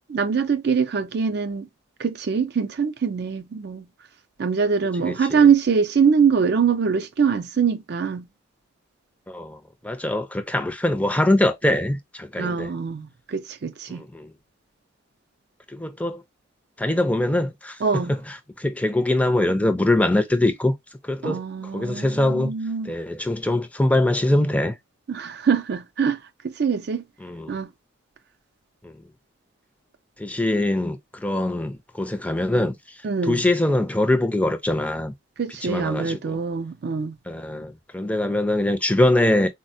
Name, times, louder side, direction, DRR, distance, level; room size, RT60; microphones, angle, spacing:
voice 1, 0.0-1.7 2.0-3.9 4.4-8.3 12.4-14.0 17.8-18.2 21.2-22.9 25.1-27.0 27.5-27.7 33.0-33.4 35.4-37.2, right 6 dB, 55° right, 0.4 m, -23 dB
voice 2, 5.0-5.5 9.3-12.7 13.9-14.3 15.7-16.2 16.8-20.7 21.0-22.5 22.8-24.8 27.2-27.6 28.8-29.0 30.2-35.1 35.6-36.4 37.3-39.5, left 1 dB, 5° left, 0.4 m, -23 dB
4.1 x 2.1 x 2.6 m
head